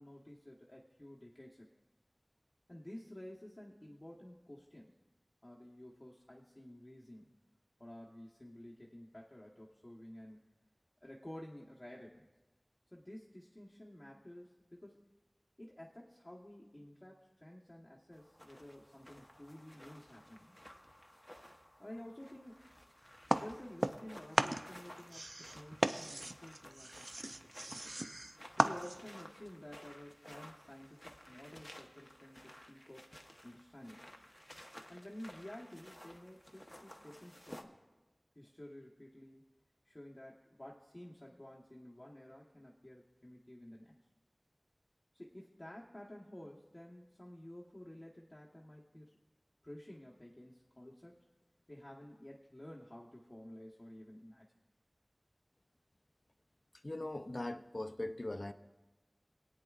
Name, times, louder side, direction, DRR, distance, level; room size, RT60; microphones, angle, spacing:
voice 1, 0.0-1.7 2.7-4.9 5.4-7.3 7.8-10.4 11.0-12.3 12.9-15.0 15.6-20.6 21.8-22.7 23.4-27.5 28.5-33.1 33.4-34.1 34.9-37.8 38.3-39.4 39.8-44.0 45.1-49.2 49.6-51.3 51.7-54.5, left 1 dB, 35° left, 1.1 m, -52 dB
sound 1, 18.1-37.6, equal, 15° left, 1.0 m, -56 dB
sound 2, 23.3-24.1 24.3-29.2, right 2 dB, 65° right, 0.4 m, -36 dB
voice 2, 56.8-58.5, left 1 dB, 65° left, 0.5 m, -40 dB
24.0 x 8.9 x 2.4 m
wide cardioid pair, 45°, 0 cm